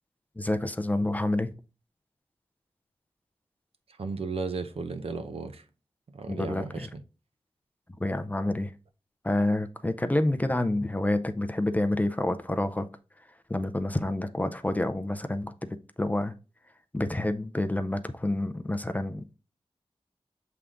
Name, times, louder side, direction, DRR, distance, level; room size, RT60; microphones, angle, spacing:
voice 1, 0.4-1.6 6.3-6.9 8.0-8.7 9.2-12.9 13.5-15.5 16.0-16.3 16.9-19.4, left 1 dB, 15° left, 0.5 m, -28 dB
voice 2, 4.0-5.6 6.1-7.0, right 4 dB, 70° right, 0.7 m, -34 dB
7.4 x 3.5 x 3.7 m
wide cardioid pair, 90°, 10 cm